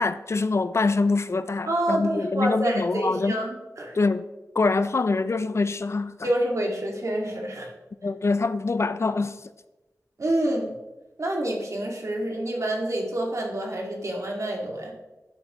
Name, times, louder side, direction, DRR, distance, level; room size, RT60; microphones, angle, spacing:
voice 1, 0.0-3.3 3.9-4.3 4.6-6.3 8.0-9.4, left 3 dB, 50° left, 0.4 m, -24 dB
voice 2, 1.7-4.0 6.2-7.7 10.2-10.7 11.2-14.9, right 1 dB, 60° right, 2.0 m, -27 dB
11.5 x 7.3 x 3.0 m
wide cardioid pair, 60°, 6 cm